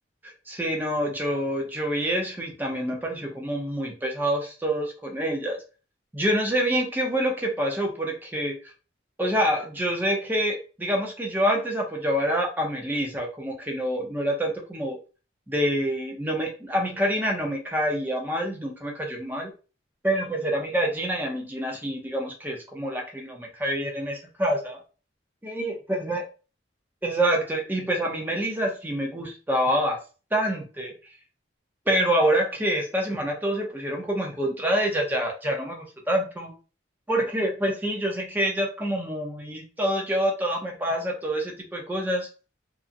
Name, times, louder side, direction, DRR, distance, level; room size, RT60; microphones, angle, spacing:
voice 1, 0.2-5.6 6.1-8.6 9.2-15.0 15.5-19.5 20.0-24.8 25.4-26.2 27.0-30.0 30.3-30.9 31.9-36.5 37.1-42.3, equal, 10° right, 1 dB, 0.5 m, -26 dB
2.8 x 2.5 x 2.4 m, 0.35 s
head